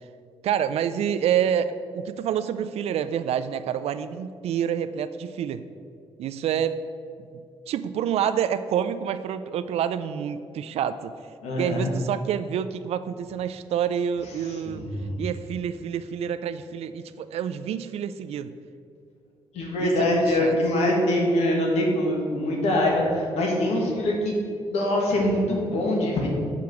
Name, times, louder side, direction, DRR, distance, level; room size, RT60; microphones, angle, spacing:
voice 1, 0.4-5.7 6.2-6.8 7.2-11.1 11.6-14.8 15.2-18.6 19.8-20.5, right 9 dB, 75° right, 12 dB, 0.4 m, -28 dB
voice 2, 11.4-11.9 14.4-15.2 19.5-24.4 24.7-26.3, left 1 dB, 85° left, -1 dB, 1.6 m, -24 dB
5.8 x 4.9 x 5.9 m, 2.3 s
cardioid pair, 95°, 11 cm